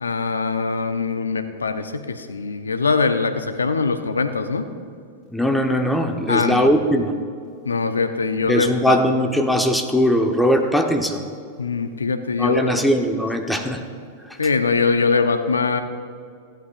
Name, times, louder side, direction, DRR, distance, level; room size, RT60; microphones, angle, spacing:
voice 1, 0.0-4.7 6.3-6.7 7.7-9.0 11.6-12.8 14.4-15.8, left 4 dB, 90° left, 9 dB, 0.7 m, -22 dB
voice 2, 5.3-7.1 8.5-11.2 12.3-13.8, equal, 5° left, 3 dB, 1.1 m, -20 dB
15.5 x 11.5 x 2.5 m, 2.3 s
hypercardioid pair, 100°, 0 cm